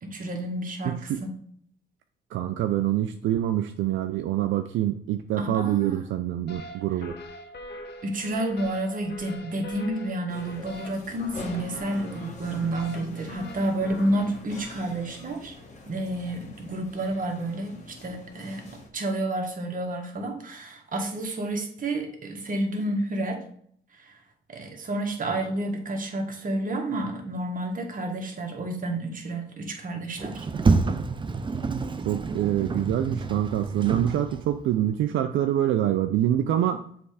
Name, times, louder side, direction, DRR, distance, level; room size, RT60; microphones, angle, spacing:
voice 1, 0.0-1.3 5.4-6.0 8.0-15.5 15.8-18.7 18.9-23.4 24.0-24.2 24.5-30.5, right 1 dB, 45° right, 3 dB, 1.5 m, -30 dB
voice 2, 0.8-1.2 2.3-7.2 32.0-36.8, right 12 dB, 80° right, 8 dB, 0.5 m, -25 dB
sound 1, 6.5-14.8, left 1 dB, 55° left, 1.1 m, -43 dB
sound 2, 10.3-18.9, left 2 dB, 35° left, 1.7 m, -45 dB
Sliding door, 30.2-34.6, right 4 dB, 25° right, 0.6 m, -27 dB
7.0 x 3.4 x 4.8 m, 0.63 s
cardioid pair, 90°, 20 cm